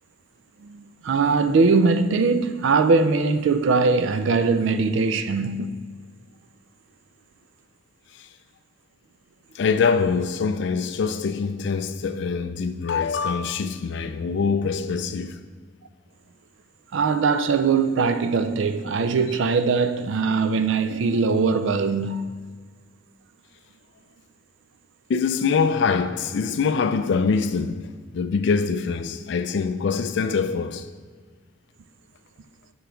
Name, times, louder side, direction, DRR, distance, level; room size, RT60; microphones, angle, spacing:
voice 1, 0.6-5.7 16.9-22.2, right 4 dB, 65° right, 0.4 m, -21 dB
voice 2, 9.6-15.4 25.1-30.9, left 5 dB, 55° left, 0.3 m, -24 dB
6.8 x 3.9 x 4.4 m
head